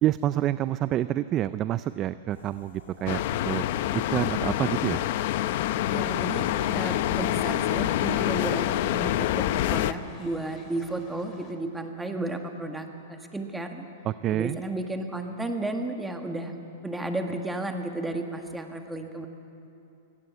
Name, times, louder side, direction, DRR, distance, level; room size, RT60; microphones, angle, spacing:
voice 1, 0.0-3.6 3.9-5.0 14.0-14.6, right 13 dB, 30° right, 14 dB, 0.4 m, -27 dB
sound 1, 2.3-7.9, left 5 dB, 90° left, 3.1 m, -53 dB
sound 2, 3.1-9.9, left 13 dB, 55° left, 0.7 m, -26 dB
voice 2, 5.9-13.9 14.3-16.5 16.8-19.3, right 2 dB, 5° right, 4 dB, 1.7 m, -33 dB
sound 3, 6.4-11.5, left 4 dB, 30° left, 2.7 m, -50 dB
23.5 x 17.5 x 8.3 m, 2.7 s
hypercardioid pair, 140°, 0 cm